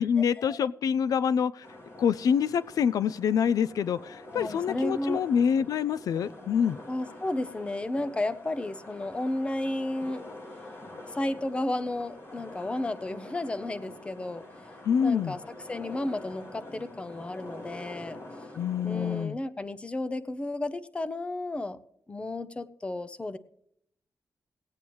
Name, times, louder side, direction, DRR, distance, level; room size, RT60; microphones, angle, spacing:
voice 1, 0.0-1.7 2.0-6.8 14.9-15.4 18.6-19.4, left 7 dB, 75° left, 18 dB, 0.3 m, -26 dB
sound 1, 1.6-19.2, left 1 dB, 40° left, 1.9 m, -45 dB
voice 2, 4.3-5.2 6.9-10.2 11.0-14.4 15.0-18.2 18.8-21.8 22.1-23.4, left 1 dB, 20° left, 14 dB, 0.6 m, -33 dB
18.5 x 8.5 x 3.1 m, 0.69 s
wide cardioid pair, 160°, 6 cm